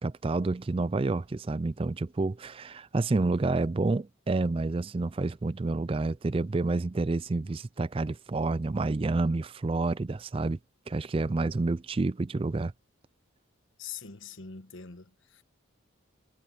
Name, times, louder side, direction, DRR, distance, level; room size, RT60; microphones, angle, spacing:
voice 1, 0.0-10.6 10.9-12.7, right 3 dB, 25° right, 0.3 m, -29 dB
voice 2, 13.8-15.4, left 7 dB, 70° left, 1.2 m, -43 dB
head